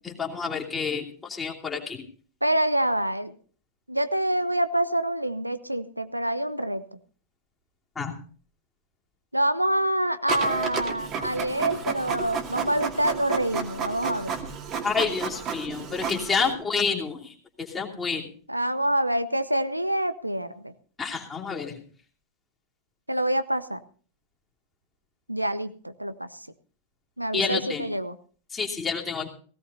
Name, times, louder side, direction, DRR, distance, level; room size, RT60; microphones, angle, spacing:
voice 1, 0.0-2.0 8.0-8.1 14.8-17.3 17.6-18.3 21.0-21.8 27.3-27.9 28.5-29.3, left 5 dB, 15° left, -1 dB, 2.8 m, -29 dB
voice 2, 2.4-3.3 3.9-6.8 9.3-14.3 16.4-16.5 18.5-20.7 23.1-23.8 25.3-26.3 27.2-28.2, right 1 dB, 90° right, 12 dB, 0.7 m, -26 dB
Printer, 10.3-16.5, right 6 dB, 30° right, 2.3 m, -32 dB
18.5 x 16.5 x 2.7 m, 0.42 s
figure-of-eight pair, 90°, 0 cm